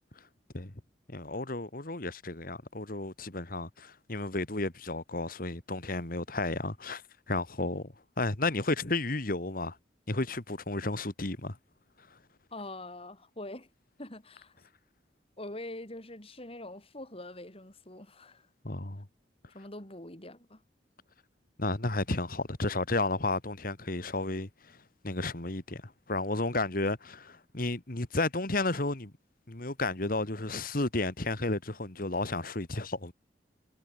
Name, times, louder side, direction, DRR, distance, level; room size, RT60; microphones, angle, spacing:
voice 1, 1.1-7.0 7.3-9.8 10.1-11.6 18.6-19.0 21.6-24.8 25.0-29.1 29.5-33.1, left 2 dB, 55° left, 2.2 m, -32 dB
voice 2, 12.5-13.7 14.0-14.5 15.4-18.5 19.5-20.6, left 1 dB, 35° left, 4.8 m, -44 dB
head